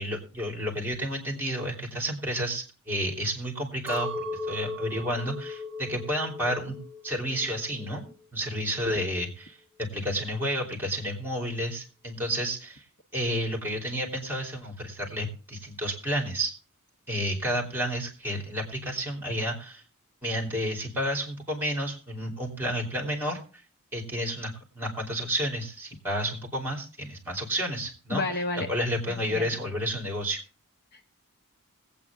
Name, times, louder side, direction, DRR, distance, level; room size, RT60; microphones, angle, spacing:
voice 1, 0.0-6.8 7.0-8.0 8.3-12.8 13.1-16.5 17.1-19.8 20.2-23.4 23.9-28.2 28.7-30.4, equal, 10° right, 2 dB, 3.3 m, -31 dB
Chink clink, 3.9-8.2 8.5-9.3, left 1 dB, 25° right, 3.0 m, -38 dB
voice 2, 28.1-28.7 29.1-29.5 30.9-31.1, left 2 dB, 45° left, 6 dB, 1.0 m, -31 dB
21.0 x 8.7 x 3.6 m, 0.35 s
head